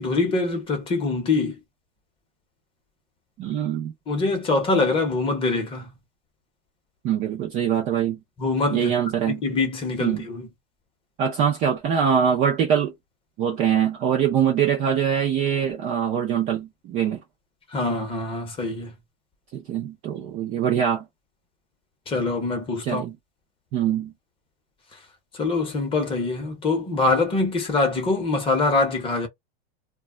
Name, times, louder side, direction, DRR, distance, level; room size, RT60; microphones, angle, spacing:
voice 1, 0.0-1.6 4.1-6.0 8.4-8.9 9.3-10.5 17.7-18.9 22.1-23.1 25.3-29.3, left 3 dB, 15° left, 0.7 m, -24 dB
voice 2, 3.4-3.9 7.0-8.2 8.7-9.4 10.0-10.3 11.2-12.9 13.4-17.2 19.5-21.0 22.8-23.1 23.7-24.1, right 8 dB, 25° right, 0.3 m, -23 dB
2.2 x 2.0 x 3.5 m
supercardioid pair, 155°, 32 cm